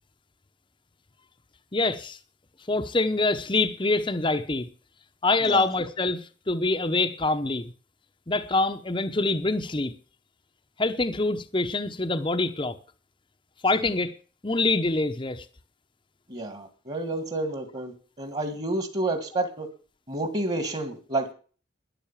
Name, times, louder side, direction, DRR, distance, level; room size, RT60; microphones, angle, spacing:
voice 1, 1.7-2.2 2.7-4.7 5.2-6.2 6.5-7.7 8.3-9.9 10.8-12.7 13.6-14.1 14.4-15.4, left 2 dB, 25° left, 0.8 m, -25 dB
voice 2, 16.3-19.7 20.1-21.3, right 2 dB, 35° right, 1.8 m, -30 dB
12.5 x 11.0 x 7.3 m
head